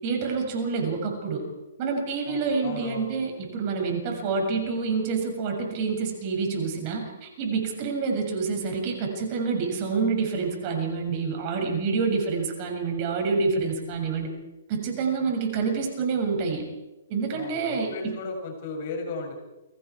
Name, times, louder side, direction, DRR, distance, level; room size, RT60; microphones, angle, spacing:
voice 1, 0.0-1.4 1.8-14.3 14.7-16.6 17.1-18.2, right 4 dB, 40° right, 2 dB, 7.0 m, -27 dB
voice 2, 2.3-3.1 17.3-19.4, left 4 dB, 50° left, 2 dB, 7.3 m, -35 dB
29.5 x 24.5 x 4.8 m, 1.1 s
hypercardioid pair, 125°, 0 cm